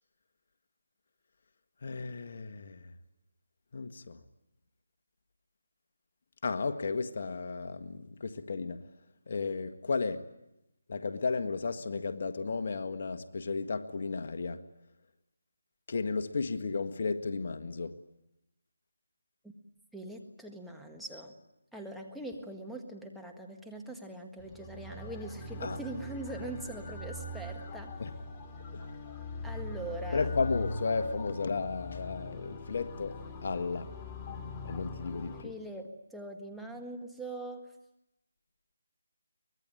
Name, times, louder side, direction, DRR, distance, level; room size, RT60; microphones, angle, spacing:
voice 1, 1.8-2.9 3.7-4.2 6.4-8.9 9.3-10.3 10.9-14.6 15.9-18.0 25.6-25.8 28.0-28.1 28.7-28.9 30.1-33.9 34.6-35.5, left 4 dB, 50° left, 1.5 m, -34 dB
voice 2, 19.9-21.3 21.7-28.0 29.4-30.3 35.4-37.6, right 1 dB, ahead, 1.7 m, -42 dB
sound 1, 24.4-35.4, left 2 dB, 20° left, 2.2 m, -41 dB
24.0 x 20.5 x 9.0 m
figure-of-eight pair, 160°, 0 cm